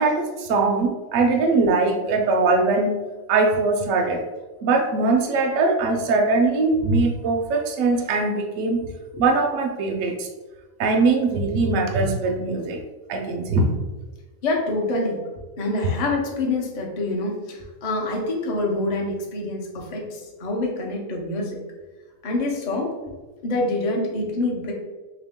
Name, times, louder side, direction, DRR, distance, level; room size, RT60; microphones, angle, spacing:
voice 1, 0.0-3.0 3.3-4.2 4.6-8.8 9.2-10.3 10.8-12.8 13.1-13.7, right 3 dB, 75° right, 2 dB, 0.9 m, -21 dB
voice 2, 14.4-15.2 15.6-21.6 22.2-23.1 23.4-24.7, left 2 dB, 40° left, -1 dB, 0.6 m, -26 dB
3.2 x 2.9 x 3.5 m, 1.2 s
omnidirectional pair, 1.5 m